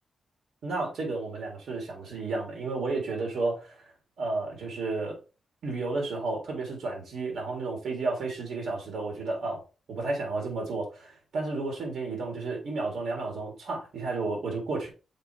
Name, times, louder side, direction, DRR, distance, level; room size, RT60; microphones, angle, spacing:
voice 1, 0.6-3.8 4.2-5.2 5.6-9.6 9.9-14.9, right 3 dB, 85° right, 3.4 m, -32 dB
6.6 x 5.3 x 3.4 m
wide cardioid pair, 150°, 0 cm